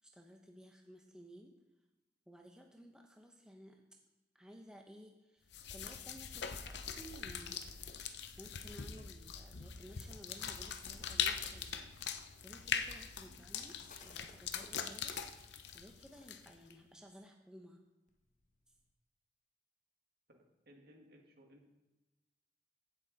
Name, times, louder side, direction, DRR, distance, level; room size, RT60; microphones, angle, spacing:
voice 1, 0.0-1.5 2.3-3.8 4.3-7.6 8.4-11.8 12.4-13.7 14.0-17.8, equal, 5° right, 2 dB, 0.8 m, -56 dB
sound 1, 5.5-16.7, left 7 dB, 65° left, 0.7 m, -42 dB
sound 2, 11.9-16.7 18.1-18.9, left 4 dB, 45° left, 0.9 m, -63 dB
voice 2, 20.3-21.7, equal, 60° right, 2 dB, 1.8 m, -62 dB
15.5 x 6.5 x 4.0 m, 1.1 s
head